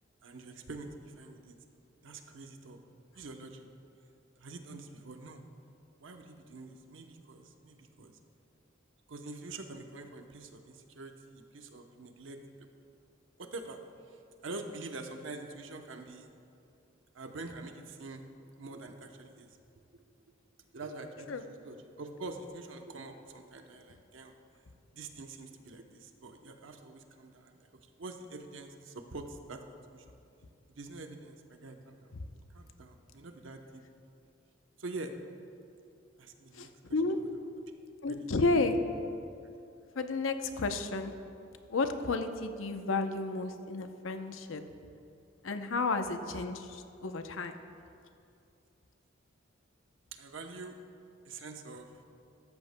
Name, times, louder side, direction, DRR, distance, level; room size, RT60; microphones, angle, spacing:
voice 1, 0.2-1.6 2.0-2.8 3.1-3.7 4.4-5.4 6.0-8.1 9.1-12.7 13.4-13.8 14.1-16.3 17.1-18.2 18.6-19.5 19.9-20.0 20.7-24.3 24.9-27.7 28.0-29.6 29.9-30.0 30.7-32.1 32.5-33.8 34.8-35.2 36.2-36.7 38.1-38.3 50.2-50.8 51.2-52.0, right 3 dB, 75° right, 5 dB, 0.8 m, -45 dB
voice 2, 36.5-37.2 38.0-38.8 40.0-41.1 41.7-44.6 45.4-47.6, left 3 dB, 90° left, 8 dB, 0.7 m, -32 dB
13.0 x 13.0 x 2.2 m, 2.5 s
head